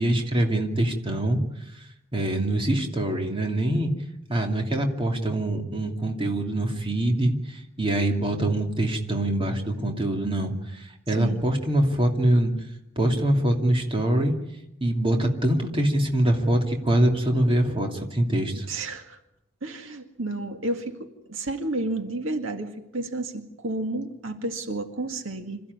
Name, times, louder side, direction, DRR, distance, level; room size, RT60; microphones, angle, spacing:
voice 1, 0.0-1.4 1.7-1.8 2.1-3.9 4.3-12.5 13.0-14.4 14.8-18.7, right 1 dB, 25° right, 2 dB, 2.8 m, -24 dB
voice 2, 18.7-19.2 19.6-25.6, right 2 dB, 75° right, 5 dB, 2.1 m, -31 dB
26.5 x 15.0 x 9.6 m, 0.89 s
head